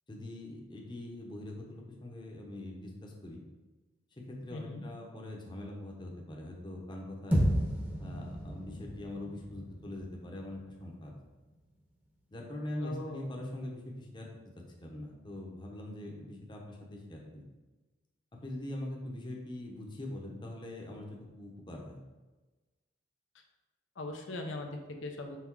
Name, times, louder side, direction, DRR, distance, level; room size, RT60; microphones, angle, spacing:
voice 1, 0.1-3.4 4.3-7.5 8.0-11.1 12.3-14.3 14.6-17.4 18.3-22.0, left 1 dB, 25° left, -1 dB, 0.8 m, -42 dB
voice 2, 4.5-4.8 12.8-13.4 24.0-25.4, left 2 dB, 85° left, 3 dB, 0.8 m, -40 dB
sound 1, 7.3-11.7, equal, 10° right, 0.9 m, -33 dB
5.9 x 3.5 x 4.6 m, 1.2 s
head